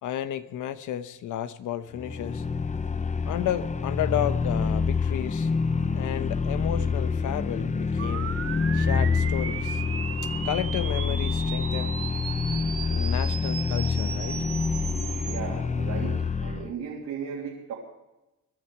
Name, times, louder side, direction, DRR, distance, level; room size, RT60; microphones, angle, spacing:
voice 1, 0.0-2.4 3.3-5.5 5.9-8.3 8.7-9.8 10.4-11.9 12.9-14.4, left 11 dB, 80° left, 1.0 m, -32 dB
sound 1, 1.9-16.7, left 5 dB, 25° left, 0.7 m, -27 dB
sound 2, 8.0-15.4, right 8 dB, 50° right, 1.2 m, -36 dB
voice 2, 15.3-17.7, right 6 dB, 80° right, 2.9 m, -36 dB
21.0 x 11.5 x 4.7 m
cardioid pair, 90°, 30 cm